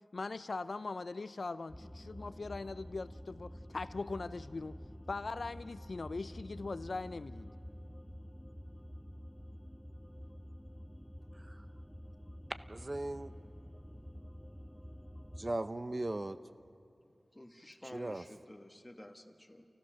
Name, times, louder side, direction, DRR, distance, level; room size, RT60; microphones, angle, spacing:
voice 1, 0.0-4.8 5.1-7.5, left 3 dB, 70° left, 14 dB, 0.4 m, -41 dB
sound 1, 1.7-15.5, equal, ahead, 0.6 m, -49 dB
voice 2, 12.7-13.3 15.4-16.4 17.9-18.2, right 2 dB, 40° right, 11 dB, 0.7 m, -38 dB
voice 3, 17.0-19.6, left 1 dB, 20° left, 6 dB, 1.5 m, -52 dB
28.5 x 15.5 x 6.4 m, 2.5 s
wide cardioid pair, 50°, 0 cm